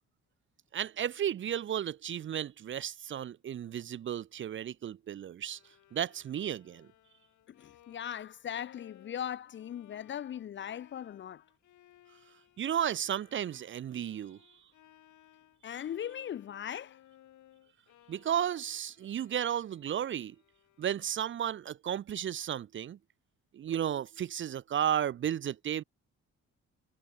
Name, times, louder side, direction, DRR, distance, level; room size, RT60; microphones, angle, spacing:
voice 1, 0.7-5.6 5.9-6.9 12.6-14.4 18.1-20.4 20.8-23.0 23.5-25.8, right 10 dB, 40° right, 0.5 m, -33 dB
Bowed string instrument, 5.4-21.5, left 12 dB, 75° left, 2.9 m, -62 dB
voice 2, 7.5-11.4 15.6-17.0, left 9 dB, 40° left, 0.4 m, -39 dB
cardioid pair, 90°, 30 cm